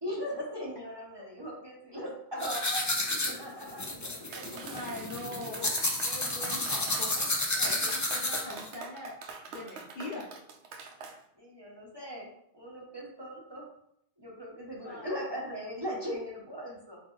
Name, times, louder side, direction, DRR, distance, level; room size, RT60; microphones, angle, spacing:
voice 1, 0.0-4.0 4.3-4.7 6.4-6.5 11.4-12.3 12.5-13.6 14.2-17.0, equal, 25° right, -3 dB, 0.9 m, -39 dB
sound 1, 2.4-8.7, left 2 dB, 30° left, 0.3 m, -31 dB
voice 2, 4.3-9.1 9.5-10.3 14.7-15.1, left 2 dB, 50° left, -3 dB, 0.8 m, -42 dB
Clapping, 4.3-11.2, right 5 dB, 80° right, 0.9 m, -44 dB
3.9 x 2.5 x 3.8 m, 0.73 s
omnidirectional pair, 1.1 m